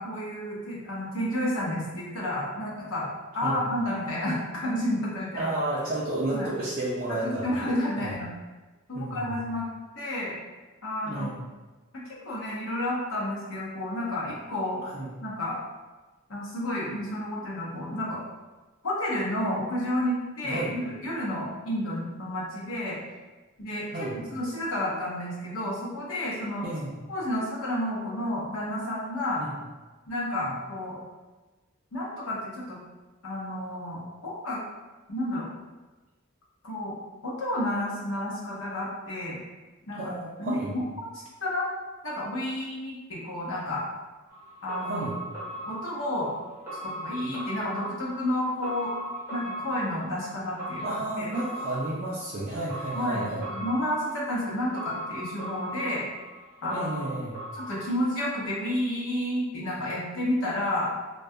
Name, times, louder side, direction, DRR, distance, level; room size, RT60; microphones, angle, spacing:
voice 1, 0.0-3.1 3.3-5.5 6.3-6.5 7.1-8.3 8.9-9.7 10.0-10.4 10.8-11.3 11.9-14.8 15.2-15.6 16.3-18.2 18.8-23.0 23.6-26.6 27.1-29.4 30.1-31.0 31.9-32.8 33.2-34.6 35.1-35.5 36.6-37.0 37.2-39.4 39.9-40.1 40.4-41.1 41.4-41.7 42.0-43.8 44.6-45.0 45.7-46.3 46.8-48.9 49.3-51.3 52.9-56.0 56.6-56.9 57.5-60.9, left 1 dB, 80° left, -5 dB, 0.7 m, -31 dB
voice 2, 5.4-7.5 8.0-8.1 8.9-9.4 11.0-11.4 14.8-15.1 20.4-20.7 23.9-24.2 26.6-26.9 29.4-29.5 30.4-30.5 39.9-40.7 44.8-45.2 50.8-53.4 56.7-57.4, right 2 dB, 40° right, -7 dB, 0.4 m, -32 dB
sound 1, 44.3-58.5 58.8-58.9, right 1 dB, 10° right, 0.7 m, -39 dB
2.2 x 2.2 x 2.7 m, 1.2 s
head